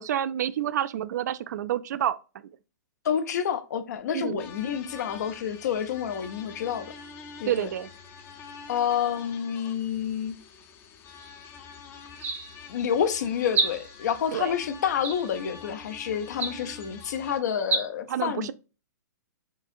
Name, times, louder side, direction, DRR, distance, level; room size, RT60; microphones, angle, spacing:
voice 1, 0.0-2.2 4.1-4.5 7.5-7.9 14.3-14.6 18.1-18.5, right 11 dB, 70° right, 0.4 m, -28 dB
voice 2, 3.0-6.9 7.4-7.7 8.7-10.3 12.7-18.5, left 8 dB, 65° left, 0.7 m, -28 dB
sound 1, 4.4-17.4, left 6 dB, 25° left, 0.6 m, -46 dB
sound 2, 11.2-11.5 12.1-12.7 13.5-14.1 15.0-15.6 16.3-16.9 17.6-17.9, right 3 dB, 20° right, 0.7 m, -30 dB
4.7 x 2.7 x 2.5 m
hypercardioid pair, 130°, 10 cm